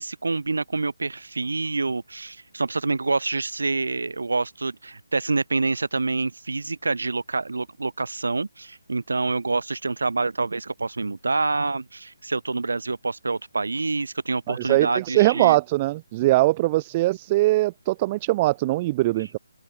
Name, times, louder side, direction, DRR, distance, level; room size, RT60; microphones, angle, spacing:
voice 1, 0.0-15.6, right 3 dB, 60° right, 3.1 m, -27 dB
voice 2, 14.5-19.4, right 18 dB, 20° right, 0.5 m, -21 dB
open air
figure-of-eight pair, 145°, 0 cm